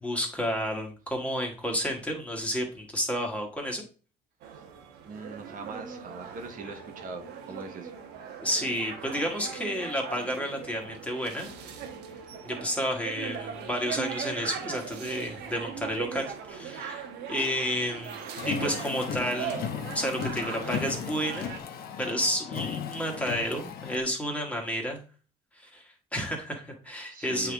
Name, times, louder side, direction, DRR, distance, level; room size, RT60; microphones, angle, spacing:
voice 1, 0.0-3.8 8.4-11.5 12.4-17.0 17.3-18.2 18.4-19.6 19.9-21.5 22.0-25.0 25.6-25.8 26.1-27.5, equal, 10° left, 1 dB, 1.6 m, -31 dB
sound 1, 4.4-21.6, right 7 dB, 85° right, 1.1 m, -39 dB
voice 2, 5.0-7.9 27.1-27.5, right 4 dB, 55° right, 4 dB, 1.2 m, -41 dB
Car, 18.4-24.0, left 8 dB, 65° left, 1.0 m, -36 dB
8.2 x 3.6 x 3.5 m, 0.37 s
cardioid pair, 110°, 17 cm